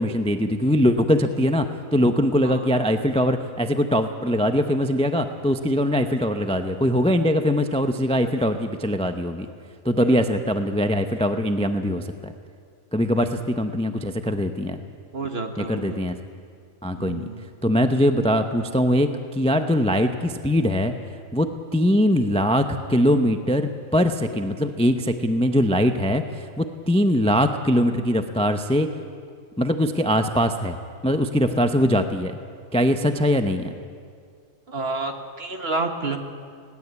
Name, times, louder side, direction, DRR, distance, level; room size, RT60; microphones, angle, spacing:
voice 1, 0.0-1.7 1.9-9.5 9.8-12.3 12.9-14.8 15.6-16.1 16.8-17.3 17.6-20.9 21.3-28.9 29.6-30.8 31.0-32.4 32.7-33.7, equal, 5° left, 7 dB, 0.4 m, -22 dB
voice 2, 2.4-2.8 10.0-10.2 13.1-13.3 15.1-16.0 17.0-17.5 34.7-36.2, right 3 dB, 40° right, 5 dB, 1.7 m, -30 dB
20.5 x 18.0 x 8.3 m, 2.1 s
omnidirectional pair, 1.7 m